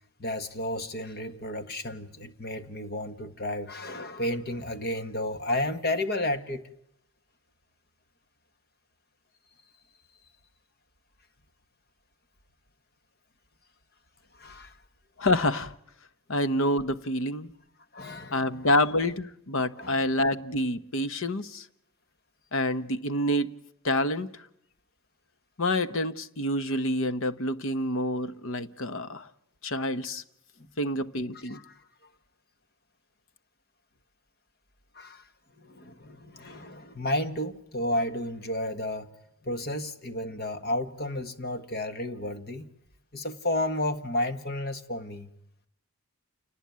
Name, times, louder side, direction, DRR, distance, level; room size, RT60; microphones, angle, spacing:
voice 1, 0.2-6.6 14.3-14.8 17.9-18.8 19.7-20.0 31.4-31.8 34.9-35.3 35.6-39.1 39.4-42.7 43.1-45.3, left 1 dB, 45° left, 1.5 m, -32 dB
voice 2, 15.2-15.7 16.3-17.5 18.3-21.6 22.5-23.5 23.8-24.3 25.6-29.3 29.6-30.2 30.8-31.6, left 1 dB, 65° left, 1.0 m, -27 dB
28.5 x 19.0 x 9.5 m
head